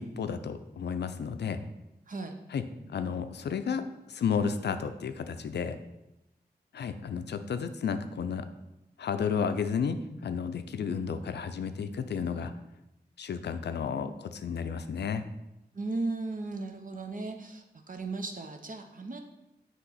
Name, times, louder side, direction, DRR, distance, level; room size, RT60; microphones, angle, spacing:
voice 1, 0.0-1.6 2.5-2.6 2.9-5.8 6.7-8.5 9.0-12.5 13.2-15.2, left 6 dB, 80° left, 10 dB, 0.4 m, -32 dB
voice 2, 2.1-2.4 15.7-19.2, right 3 dB, 50° right, 4 dB, 0.7 m, -36 dB
5.8 x 3.0 x 5.6 m, 0.93 s
cardioid pair, 50°, 17 cm